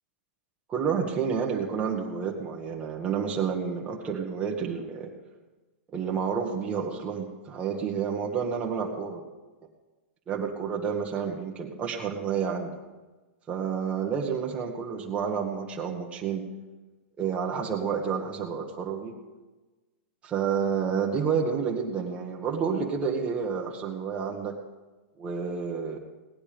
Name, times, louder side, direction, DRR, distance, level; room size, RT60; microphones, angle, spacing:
voice 1, 0.7-5.1 5.9-9.2 10.3-12.8 13.5-16.5 17.2-19.1 20.2-24.5 25.2-26.0, right 6 dB, 20° right, -1 dB, 1.4 m, -29 dB
17.5 x 11.0 x 5.1 m, 1.2 s
hypercardioid pair, 140°, 7 cm